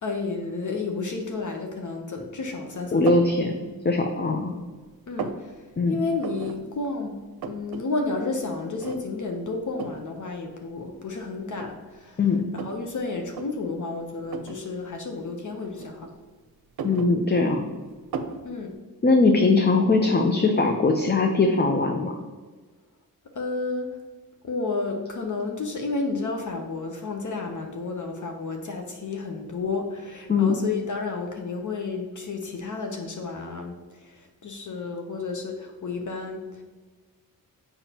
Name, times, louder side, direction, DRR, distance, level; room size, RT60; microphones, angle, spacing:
voice 1, 0.0-3.2 5.1-5.6 5.9-7.2 7.4-12.2 12.5-16.1 18.4-18.8 23.3-23.9 24.4-36.6, left 3 dB, 55° left, 3 dB, 0.9 m, -31 dB
voice 2, 2.9-3.6 3.8-4.5 5.8-6.0 12.2-12.4 16.8-17.6 19.0-22.2 30.3-30.6, left 3 dB, 30° left, 4 dB, 0.6 m, -21 dB
sound 1, 3.1-3.4 3.9-4.6 4.8-5.4 6.2-6.6 6.9-7.0 7.2-7.8 8.2-8.3 8.8-9.3 9.8-10.1 10.9-11.0 11.5-12.9 13.3-13.5 14.3-14.6 15.6-16.3 16.6-17.6 18.1-18.4, right 5 dB, 75° right, 0.7 m, -35 dB
7.1 x 5.6 x 2.9 m, 1.4 s
cardioid pair, 85°, 36 cm